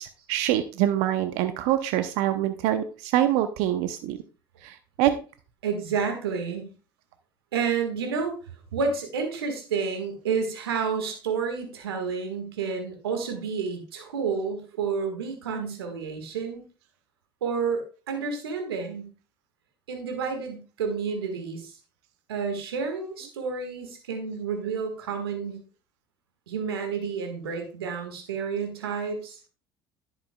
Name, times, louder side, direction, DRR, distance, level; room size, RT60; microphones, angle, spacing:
voice 1, 0.0-4.2 4.6-5.2, right 12 dB, 70° right, 10 dB, 0.7 m, -25 dB
voice 2, 5.6-6.7 7.5-8.4 8.7-16.6 17.4-19.1 19.9-21.8 22.3-25.6 26.5-29.4, right 5 dB, 85° right, 5 dB, 1.7 m, -30 dB
10.5 x 8.1 x 2.3 m, 0.34 s
hypercardioid pair, 65°, 12 cm